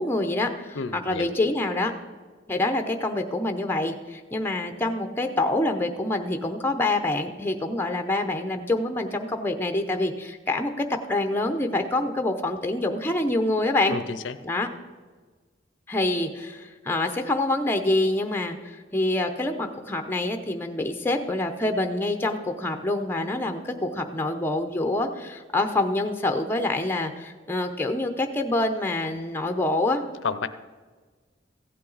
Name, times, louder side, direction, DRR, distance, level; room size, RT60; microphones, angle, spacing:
voice 1, 0.0-0.8 1.1-1.9 2.5-14.0 14.4-14.7 15.9-18.6 18.9-30.0, left 2 dB, 10° left, 6 dB, 0.7 m, -26 dB
voice 2, 0.7-1.3 13.9-14.4 30.2-30.5, left 4 dB, 80° left, 13 dB, 0.6 m, -30 dB
15.0 x 8.6 x 4.0 m, 1.4 s
head